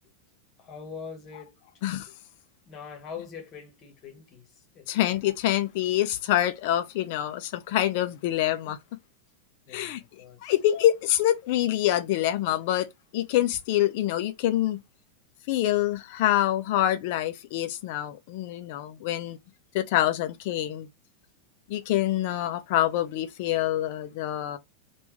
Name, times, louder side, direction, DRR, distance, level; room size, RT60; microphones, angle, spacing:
voice 1, 0.6-1.6 2.7-4.9 9.7-10.5, left 6 dB, 35° left, 1.3 m, -43 dB
voice 2, 4.9-8.8 9.7-10.0 10.4-14.8 15.5-19.4 19.7-20.9 21.7-24.6, left 13 dB, 50° left, 0.6 m, -26 dB
3.4 x 2.6 x 3.2 m
figure-of-eight pair, 90°, 0 cm